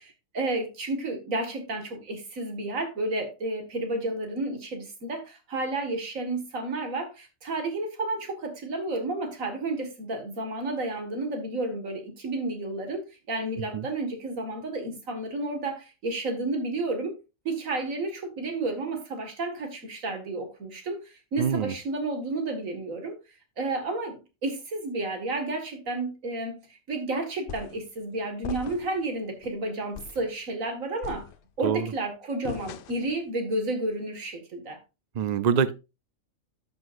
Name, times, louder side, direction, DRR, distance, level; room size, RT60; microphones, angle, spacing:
voice 1, 0.3-17.2 17.5-23.2 23.6-24.2 24.4-26.6 26.9-31.3 31.6-34.8, right 2 dB, 85° right, 2.2 m, -31 dB
voice 2, 21.4-21.7 31.6-31.9 35.1-35.7, right 7 dB, 55° right, 0.4 m, -25 dB
sound 1, 27.5-27.9 28.4-29.0 29.4-29.6 29.9-30.3 31.0-31.7 32.4-33.2, left 8 dB, 65° left, 0.5 m, -40 dB
12.0 x 6.3 x 2.5 m
omnidirectional pair, 1.4 m